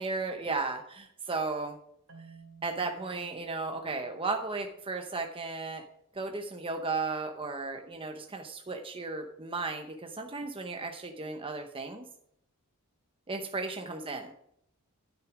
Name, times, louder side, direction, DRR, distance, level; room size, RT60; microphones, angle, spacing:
voice 1, 0.0-1.8 2.6-5.8 6.1-12.1 13.3-14.3, right 3 dB, 25° right, 4 dB, 0.8 m, -35 dB
Marimba xylophone, 2.1-5.1, right 5 dB, 60° right, 2.6 m, -56 dB
12.5 x 6.1 x 4.9 m, 0.73 s
head